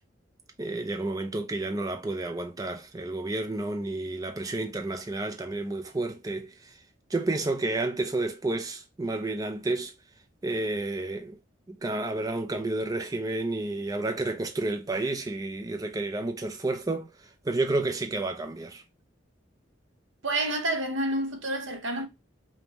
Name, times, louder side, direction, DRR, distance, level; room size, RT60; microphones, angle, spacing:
voice 1, 0.6-6.8 7.1-9.9 10.4-11.4 11.7-18.8, right 2 dB, 20° right, 0.5 m, -31 dB
voice 2, 20.2-22.1, right 1 dB, 75° right, 0.9 m, -29 dB
5.2 x 2.2 x 2.8 m
head